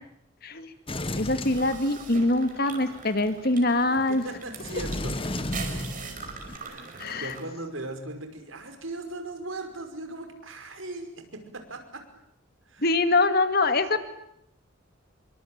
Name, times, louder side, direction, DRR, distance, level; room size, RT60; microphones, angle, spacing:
voice 1, 0.4-0.7 1.2-4.3 7.0-7.3 12.8-14.0, left 2 dB, 50° left, 10 dB, 2.3 m, -24 dB
Sliding door, 0.9-2.4 4.5-6.6, left 1 dB, 30° left, 1.7 m, -33 dB
sound 1, 1.4-7.4, right 5 dB, 40° right, 5.3 m, -42 dB
voice 2, 4.1-5.2 6.6-12.0 12.7-12.9, right 2 dB, 85° right, 7 dB, 5.5 m, -38 dB
27.0 x 24.0 x 8.9 m, 0.75 s
head